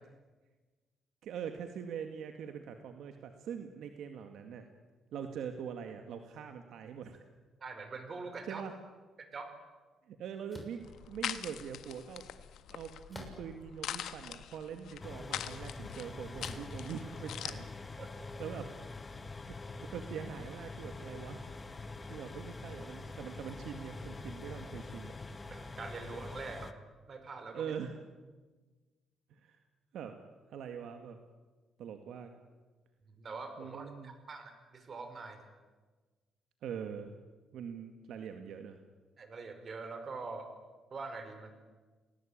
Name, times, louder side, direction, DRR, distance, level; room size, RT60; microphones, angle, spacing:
voice 1, 1.2-4.7 5.1-7.2 8.5-8.7 10.1-12.2 12.7-17.7 18.4-18.7 19.3-19.5 19.9-21.4 22.1-25.1 27.5-27.9 29.3-29.6 29.9-30.1 30.5-31.2 31.8-32.3 33.6-34.1 36.6-37.2 37.5-38.8, right 7 dB, 75° right, 6 dB, 2.1 m, -43 dB
voice 2, 7.6-8.6 9.2-9.5 18.0-18.1 25.5-26.7 27.1-27.7 33.0-35.5 39.2-40.5 40.9-41.5, right 4 dB, 45° right, 8 dB, 5.3 m, -44 dB
sound 1, 10.5-10.8 13.1-13.7 14.4-14.5 16.4-16.8, left 1 dB, 10° left, 6.7 m, -47 dB
sound 2, 10.8-17.5, left 11 dB, 80° left, 1.5 m, -43 dB
sound 3, 15.0-26.7, left 3 dB, 25° left, 1.6 m, -45 dB
29.5 x 19.5 x 8.9 m, 1.3 s
cardioid pair, 90°, 0 cm